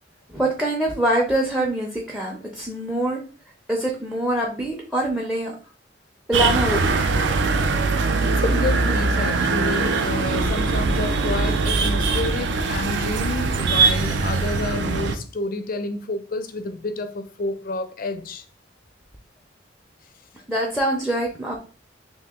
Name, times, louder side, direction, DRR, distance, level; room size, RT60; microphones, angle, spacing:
voice 1, 0.3-3.2 3.7-5.5 6.3-6.8 20.5-21.6, right 1 dB, 5° right, 0.5 m, -24 dB
sound 1, 6.3-15.2, right 3 dB, 65° right, 0.4 m, -21 dB
voice 2, 8.3-18.4, left 2 dB, 45° left, 0.4 m, -29 dB
2.9 x 2.6 x 3.5 m
head